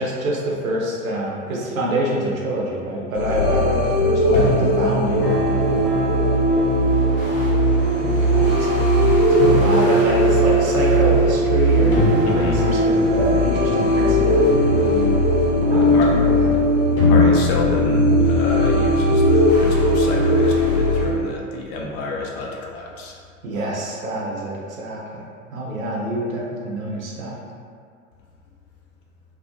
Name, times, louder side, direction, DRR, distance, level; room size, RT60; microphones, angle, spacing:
voice 1, 0.0-5.9 8.0-9.1 9.4-15.2 15.6-16.5 23.4-25.2 25.5-27.4, right 1 dB, 80° right, -3 dB, 0.7 m, -26 dB
sound 1, 3.1-21.1, equal, 75° left, 0.9 m, -17 dB
voice 2, 12.2-12.6 15.7-16.1 17.0-23.2, left 2 dB, 50° left, -1 dB, 0.5 m, -28 dB
2.2 x 2.1 x 2.6 m, 2.2 s
figure-of-eight pair, 85°, 40 cm